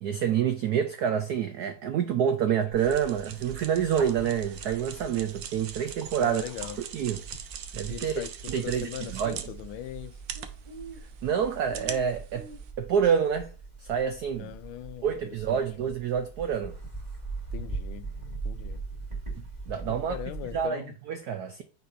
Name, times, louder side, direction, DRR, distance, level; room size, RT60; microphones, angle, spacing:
voice 1, 0.0-6.4 6.9-7.2 7.7-8.2 8.5-9.4 11.2-12.5 12.8-13.5 13.8-14.5 15.0-16.7 19.4-20.2 20.5-20.8 21.1-21.6, right 8 dB, 85° right, 0.8 m, -27 dB
Bird, 2.7-20.7, right 3 dB, 20° right, 2.3 m, -41 dB
sound 1, 2.8-12.7, right 9 dB, 70° right, 1.3 m, -43 dB
voice 2, 6.2-6.8 7.9-10.2 14.3-15.6 17.5-18.1 18.4-18.8 19.9-21.0, left 12 dB, 75° left, 1.4 m, -40 dB
9.3 x 4.2 x 2.6 m
omnidirectional pair, 2.4 m